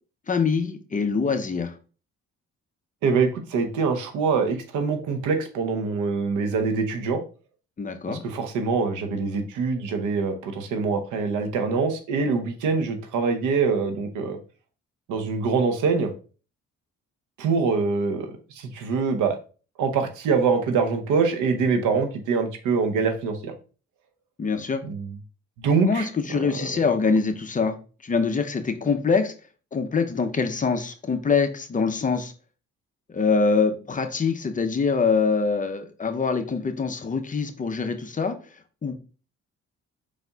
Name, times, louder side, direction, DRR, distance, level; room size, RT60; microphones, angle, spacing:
voice 1, 0.3-1.7 7.8-8.2 24.4-24.8 25.8-27.8 28.0-29.3 29.7-32.3 33.1-38.4 38.8-38.9, left 5 dB, 25° left, 7 dB, 0.6 m, -24 dB
voice 2, 3.0-7.2 8.1-14.4 15.1-16.1 17.4-18.3 18.6-19.4 19.8-23.5 24.8-25.1 25.6-26.1 26.4-26.7, right 5 dB, 90° right, 7 dB, 0.9 m, -24 dB
5.0 x 4.1 x 2.3 m, 0.37 s
cardioid pair, 90°, 30 cm